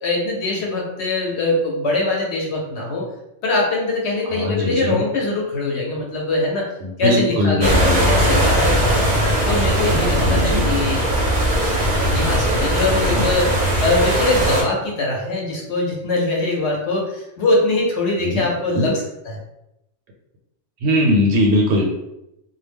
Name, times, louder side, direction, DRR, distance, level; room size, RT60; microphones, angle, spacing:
voice 1, 0.0-3.0 3.4-6.6 7.0-9.0 9.4-11.0 12.0-13.5 13.8-19.3, left 2 dB, 70° left, -2 dB, 0.9 m, -22 dB
voice 2, 4.2-5.0 6.8-8.2 9.8-10.7 12.9-13.3 18.2-18.4 18.7-18.9 20.8-21.9, left 1 dB, 85° right, 0 dB, 0.9 m, -20 dB
sound 1, 7.6-14.6, equal, 45° right, 0.6 m, -19 dB
2.2 x 2.1 x 3.3 m, 0.86 s
omnidirectional pair, 1.2 m